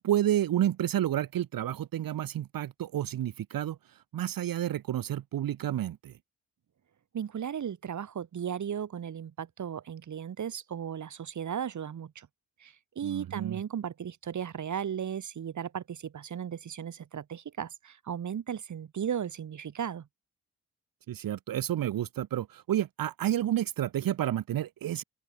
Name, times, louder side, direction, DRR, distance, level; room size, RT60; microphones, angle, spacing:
voice 1, 0.0-6.1 13.0-13.6 21.1-25.0, right 12 dB, 80° right, 1.1 m, -30 dB
voice 2, 7.1-12.3 12.6-20.1, right 8 dB, 55° right, 1.7 m, -36 dB
open air
cardioid pair, 90°, 34 cm